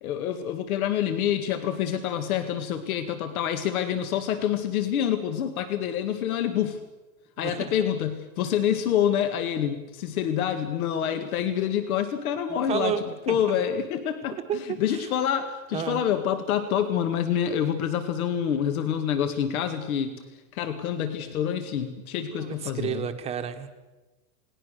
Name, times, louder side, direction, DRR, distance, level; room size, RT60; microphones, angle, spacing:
voice 1, 0.0-6.8 7.4-13.0 13.3-20.2 20.5-23.1, left 9 dB, 75° left, 8 dB, 2.1 m, -27 dB
voice 2, 7.4-7.7 12.5-13.6 14.5-14.6 14.9-15.1 15.7-16.0 22.3-23.8, right 8 dB, 15° right, 6 dB, 1.1 m, -31 dB
29.0 x 19.0 x 6.7 m, 1.2 s
supercardioid pair, 180°, 43 cm